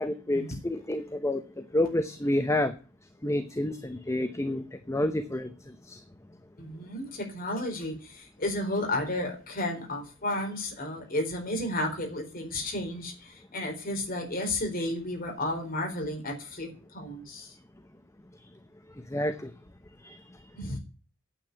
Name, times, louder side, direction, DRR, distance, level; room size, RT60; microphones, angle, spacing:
voice 1, 0.0-1.4 1.7-2.7 3.2-5.5 5.9-6.0 19.1-19.5 20.0-20.2, left 1 dB, 15° left, 10 dB, 0.8 m, -29 dB
voice 2, 6.6-17.5 20.6-20.8, left 1 dB, 45° left, 3 dB, 4.1 m, -32 dB
9.2 x 8.3 x 9.6 m, 0.36 s
head